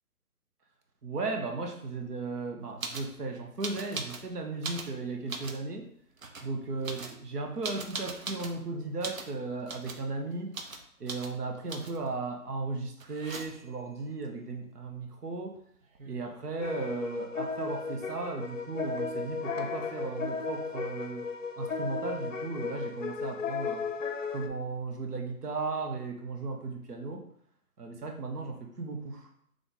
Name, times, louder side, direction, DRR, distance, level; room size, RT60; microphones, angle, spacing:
voice 1, 1.0-5.9 6.4-10.5 11.0-15.6 16.1-21.2 21.6-23.9 24.3-27.3 27.8-29.3, right 3 dB, 90° right, 2 dB, 1.0 m, -36 dB
sound 1, 2.8-3.1 3.6-4.3 4.6-5.6 6.2-6.5 6.8-8.6 9.0-9.3 9.7-10.0 10.5-10.8 11.1-11.3 11.7-12.1 13.0-13.8 15.6-15.7 15.8-16.4, right 4 dB, 60° right, 0.7 m, -40 dB
sound 2, 16.6-24.5, left 5 dB, 55° left, 0.5 m, -35 dB
3.5 x 3.4 x 3.9 m, 0.67 s
hypercardioid pair, 180°, 45 cm